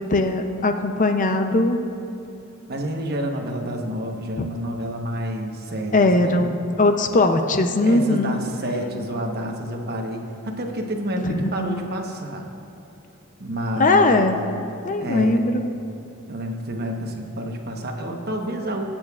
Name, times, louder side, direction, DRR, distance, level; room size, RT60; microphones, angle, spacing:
voice 1, 0.0-1.8 4.4-4.5 5.9-8.4 11.2-11.8 13.8-14.4 14.8-15.6, left 2 dB, 35° left, 6 dB, 0.6 m, -20 dB
voice 2, 2.7-6.4 7.8-12.5 13.4-14.2 15.0-15.4 16.3-18.8, right 1 dB, 50° right, 2 dB, 1.1 m, -29 dB
22.5 x 8.7 x 2.4 m, 2.9 s
head